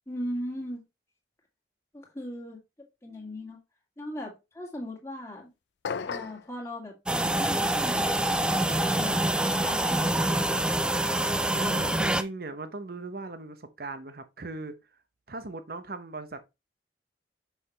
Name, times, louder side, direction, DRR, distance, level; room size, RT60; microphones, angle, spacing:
voice 1, 0.1-0.8 1.9-2.6 3.0-3.6 4.0-5.5 6.1-10.6, equal, 15° left, 2.0 m, -38 dB
sound 1, 5.8-6.5, left 6 dB, 85° left, 0.5 m, -33 dB
sound 2, 7.1-12.2, right 1 dB, 5° right, 0.4 m, -26 dB
voice 2, 11.5-14.8 15.3-16.4, right 2 dB, 55° right, 0.9 m, -38 dB
6.3 x 5.7 x 3.2 m
head